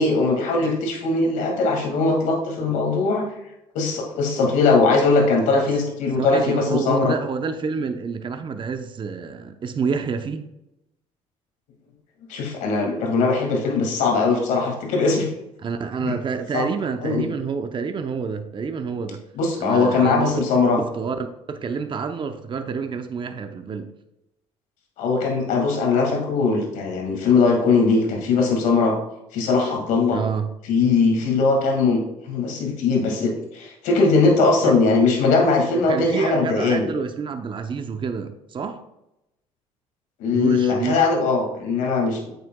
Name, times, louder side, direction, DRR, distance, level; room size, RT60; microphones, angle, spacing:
voice 1, 0.0-3.2 3.7-7.2 12.3-15.3 16.0-16.1 16.5-16.6 17.0-17.3 19.4-20.8 25.0-29.0 29.3-30.2 30.7-36.9 40.2-42.3, left 4 dB, 75° left, 1 dB, 2.1 m, -20 dB
voice 2, 6.2-10.4 15.6-19.2 19.6-20.3 21.0-23.9 30.1-30.5 34.6-34.7 35.9-38.8 40.3-41.0, right 5 dB, 40° right, 8 dB, 0.7 m, -28 dB
8.7 x 6.7 x 2.3 m, 0.88 s
supercardioid pair, 75°, 13 cm